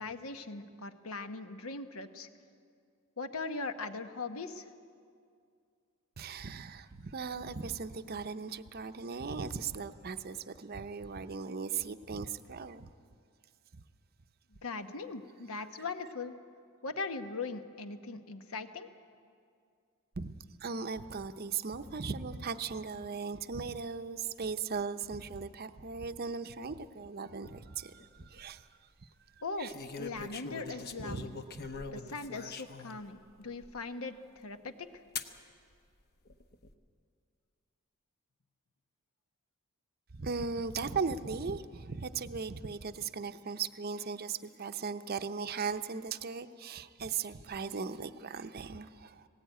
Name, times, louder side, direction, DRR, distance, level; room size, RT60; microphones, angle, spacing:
voice 1, 0.0-2.3 3.2-4.7 14.5-16.3 16.8-18.9 29.4-31.3 31.9-35.0, left 3 dB, 75° left, 9 dB, 1.1 m, -40 dB
voice 2, 6.2-12.9 13.7-13.8 20.2-20.3 20.6-28.7 29.6-29.7 31.1-31.2 40.1-49.3, right 5 dB, 45° right, 9 dB, 0.6 m, -38 dB
sound 1, 28.0-28.4 29.7-33.0 33.6-33.7 35.2-35.4 36.3-36.7, left 4 dB, 45° left, 0.9 m, -42 dB
18.5 x 18.0 x 9.2 m, 2.3 s
head